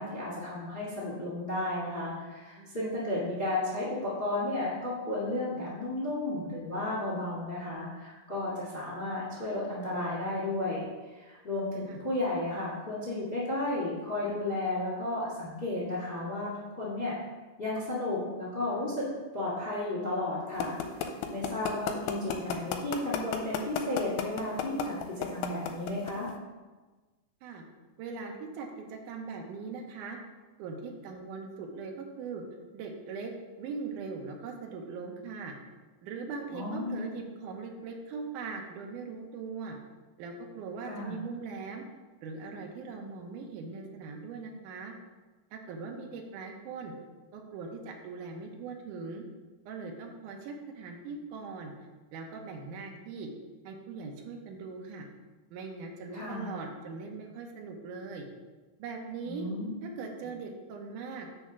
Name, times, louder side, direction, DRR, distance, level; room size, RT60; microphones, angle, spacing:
voice 1, 0.0-10.8 11.1-17.1 17.6-19.0 19.3-26.3 36.5-37.2 40.8-41.2 56.1-56.5 59.3-59.7, left 2 dB, 25° left, -6 dB, 1.2 m, -33 dB
sound 1, 20.6-26.3, left 11 dB, 90° left, 2.5 m, -31 dB
voice 2, 28.0-30.2 30.6-32.4 32.7-33.3 33.6-35.5 36.0-39.8 40.2-41.8 42.2-44.9 45.5-46.9 47.3-49.2 49.7-51.7 52.1-53.3 53.6-55.1 55.5-58.3 58.8-59.5 59.8-61.3, right 4 dB, 70° right, 2 dB, 2.2 m, -40 dB
8.2 x 3.5 x 6.1 m, 1.2 s
omnidirectional pair, 4.2 m